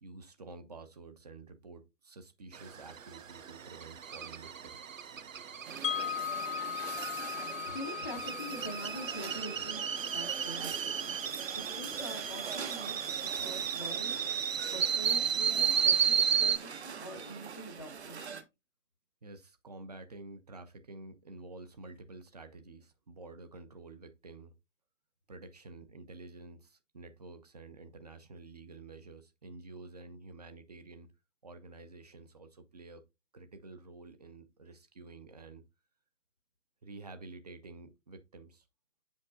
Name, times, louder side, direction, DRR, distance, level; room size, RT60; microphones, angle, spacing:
voice 1, 0.0-4.8 19.2-24.5 25.3-31.1 31.4-33.0 33.3-35.6 36.8-38.7, right 3 dB, 35° right, 0.5 m, -50 dB
sound 1, 2.5-16.6, right 7 dB, 90° right, 0.5 m, -33 dB
sound 2, 5.6-18.4, right 6 dB, 60° right, 0.9 m, -44 dB
Wind chime, 5.8-11.8, left 9 dB, 75° left, 0.6 m, -40 dB
voice 2, 7.7-9.8 10.1-13.0 13.3-14.3 14.7-18.4, equal, 20° left, 0.5 m, -45 dB
7.8 x 5.2 x 2.4 m
figure-of-eight pair, 135°, 38 cm